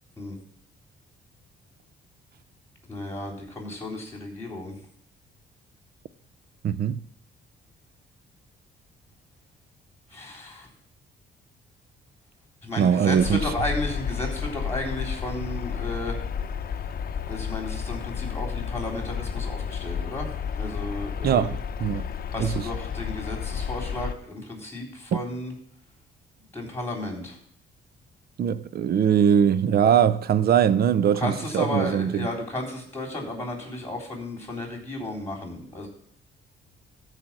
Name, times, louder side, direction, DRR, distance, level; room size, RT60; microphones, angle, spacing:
voice 1, 2.9-4.7 10.1-10.7 12.6-16.2 17.3-20.3 20.6-21.5 22.3-25.5 26.5-27.4 31.2-35.9, left 1 dB, 10° left, 3.8 m, -33 dB
voice 2, 6.6-7.0 12.8-13.4 21.2-22.1 22.4-22.7 25.1-25.2 28.4-32.3, right 8 dB, 50° right, 0.6 m, -21 dB
sound 1, 13.2-24.1, left 7 dB, 50° left, 0.7 m, -31 dB
13.5 x 5.0 x 7.5 m
cardioid pair, 90°, 20 cm